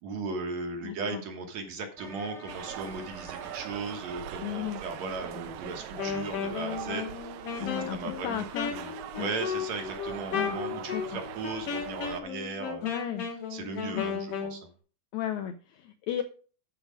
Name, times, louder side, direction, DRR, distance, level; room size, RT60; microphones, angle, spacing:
voice 1, 0.0-12.9 13.5-14.6, right 4 dB, 60° right, 4 dB, 2.3 m, -37 dB
voice 2, 0.8-1.2 4.4-4.8 7.6-8.7 9.1-9.3 10.3-10.6 10.9-11.2 12.8-13.3 13.9-14.2 15.1-16.2, left 10 dB, 80° left, 8 dB, 1.7 m, -34 dB
sound 1, 2.0-4.6 4.9-6.7 7.5-9.2, left 1 dB, ahead, 0.9 m, -50 dB
sound 2, 2.5-12.2, right 11 dB, 75° right, 2.0 m, -42 dB
Wind instrument woodwind instrument, 5.9-14.6, left 6 dB, 50° left, 2.3 m, -35 dB
12.0 x 5.0 x 5.0 m, 0.41 s
omnidirectional pair, 3.9 m